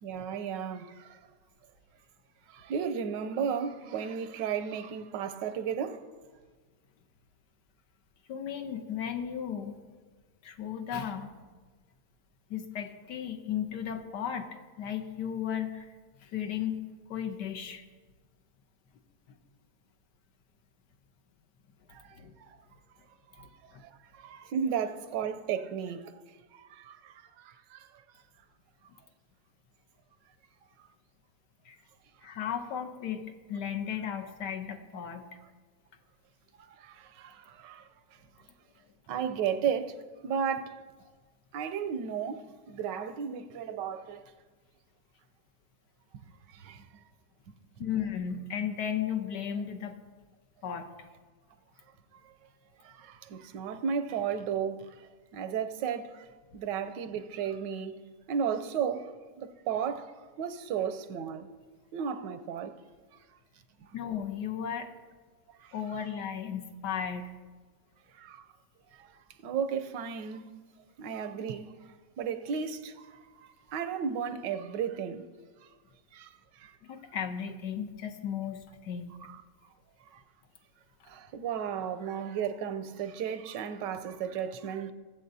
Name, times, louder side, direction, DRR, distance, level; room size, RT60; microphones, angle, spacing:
voice 1, 0.0-1.2 2.5-6.0 21.9-22.6 23.3-26.2 26.5-28.0 36.6-37.9 39.1-40.0 40.2-40.8 41.5-44.3 46.5-47.0 47.8-47.9 52.1-52.3 52.8-56.3 56.5-58.0 58.3-61.5 61.9-62.8 63.8-64.0 65.6-65.7 68.1-68.5 68.9-70.5 71.0-75.3 76.1-76.8 79.2-79.4 80.1-80.2 81.1-84.9, right 7 dB, 80° right, 1.3 m, -35 dB
voice 2, 8.3-9.8 10.4-11.3 12.5-14.5 14.8-15.9 16.2-16.8 17.1-17.8 22.1-22.3 23.4-23.8 31.6-31.8 32.2-33.2 33.5-35.3 47.8-50.0 50.6-50.9 63.9-64.9 65.7-67.3 76.8-79.1, left 8 dB, 75° left, 1.4 m, -35 dB
22.5 x 7.6 x 2.7 m
omnidirectional pair, 1.9 m